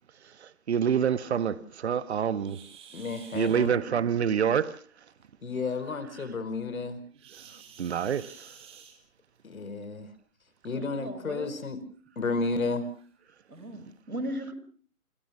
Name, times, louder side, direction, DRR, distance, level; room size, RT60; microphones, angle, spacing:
voice 1, 0.2-2.6 3.3-4.8 6.2-6.3 7.5-8.5, right 8 dB, 45° right, 1.5 m, -27 dB
sound 1, 2.4-3.6 7.1-9.4 10.6-10.8 11.4-11.5 12.0-12.1 12.9-13.0 13.5-13.7, right 7 dB, 15° right, 3.3 m, -51 dB
voice 2, 2.9-3.7 5.4-7.0 9.4-10.1 10.6-11.8 12.2-12.9, left 3 dB, 65° left, 4.7 m, -32 dB
voice 3, 10.6-11.5 13.5-13.8 14.1-14.5, right 1 dB, 90° right, 6.4 m, -37 dB
29.5 x 26.5 x 3.6 m
figure-of-eight pair, 140°, 44 cm